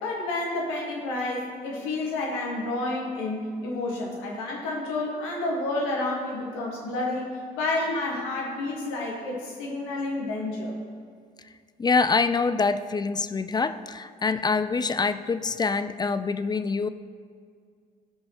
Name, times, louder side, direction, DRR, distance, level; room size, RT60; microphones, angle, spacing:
voice 1, 0.0-10.7, left 2 dB, 75° left, -2 dB, 1.6 m, -30 dB
voice 2, 11.8-16.9, left 4 dB, 20° left, 13 dB, 0.4 m, -25 dB
15.0 x 5.2 x 3.0 m, 2.1 s
figure-of-eight pair, 40°, 21 cm